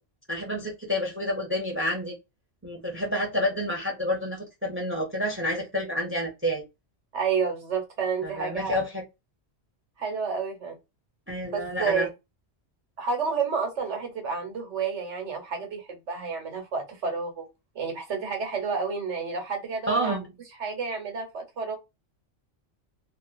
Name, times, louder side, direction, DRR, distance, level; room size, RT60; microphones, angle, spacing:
voice 1, 0.3-2.2 2.6-6.6 8.2-9.0 11.3-12.1 19.9-20.3, equal, 10° right, 0.9 m, -29 dB
voice 2, 7.1-8.8 10.0-10.8 11.5-12.1 13.0-17.4 17.7-20.2 20.6-21.8, right 5 dB, 90° right, 1.3 m, -30 dB
2.5 x 2.4 x 2.4 m
omnidirectional pair, 1.2 m